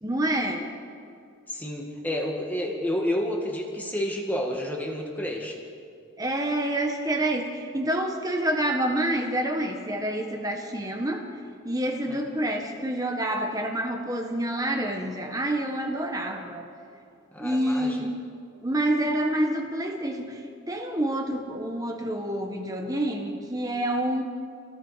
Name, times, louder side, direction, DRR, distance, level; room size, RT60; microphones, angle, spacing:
voice 1, 0.0-0.7 6.2-11.3 11.6-16.7 17.4-18.2 18.6-20.4 20.7-24.2, right 1 dB, 15° right, 3 dB, 1.4 m, -27 dB
voice 2, 1.5-5.6 12.1-12.2 17.3-18.1, left 1 dB, 10° left, -1 dB, 1.8 m, -30 dB
28.5 x 18.5 x 5.1 m, 2.4 s
head